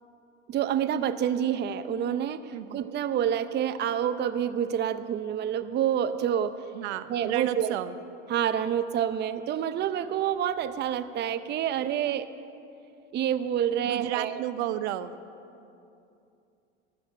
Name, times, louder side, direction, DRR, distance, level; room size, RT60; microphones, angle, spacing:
voice 1, 0.5-6.5 7.1-7.7 8.3-12.3 13.1-14.4, right 9 dB, 30° right, 12 dB, 0.7 m, -28 dB
voice 2, 6.7-8.0 13.8-15.1, right 13 dB, 75° right, 13 dB, 0.9 m, -32 dB
14.0 x 12.5 x 7.7 m, 2.7 s
supercardioid pair, 105°, 34 cm